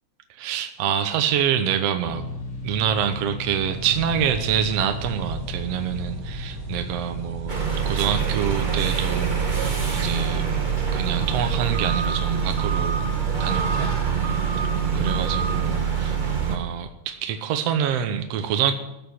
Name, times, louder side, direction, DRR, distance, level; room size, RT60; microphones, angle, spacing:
voice 1, 0.3-2.2 2.6-7.6 7.9-9.6 9.9-10.4 10.9-13.1 13.4-13.9 14.9-16.2 16.5-18.7, right 9 dB, 65° right, 7 dB, 1.8 m, -26 dB
sound 1, 2.0-12.9, left 2 dB, 60° left, 4.7 m, -39 dB
sound 2, 3.4-15.3, right 1 dB, 35° right, 1.7 m, -35 dB
sound 3, 7.5-16.6, right 7 dB, 50° right, 0.5 m, -25 dB
14.5 x 7.5 x 9.5 m, 0.94 s
omnidirectional pair, 3.3 m